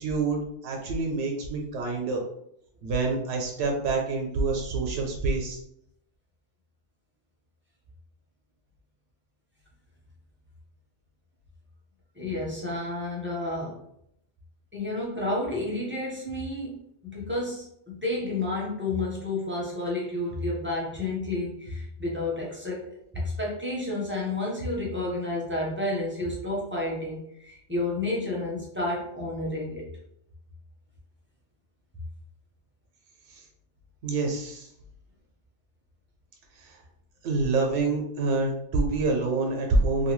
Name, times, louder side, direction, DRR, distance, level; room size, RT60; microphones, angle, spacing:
voice 1, 0.0-2.2 2.8-5.6 33.3-33.4 34.0-34.7 36.6-36.8 37.2-40.1, right 3 dB, 80° right, 1 dB, 0.9 m, -27 dB
voice 2, 12.1-13.8 14.7-29.9, left 2 dB, 15° right, -4 dB, 0.5 m, -31 dB
2.7 x 2.2 x 3.0 m, 0.72 s
omnidirectional pair, 1.2 m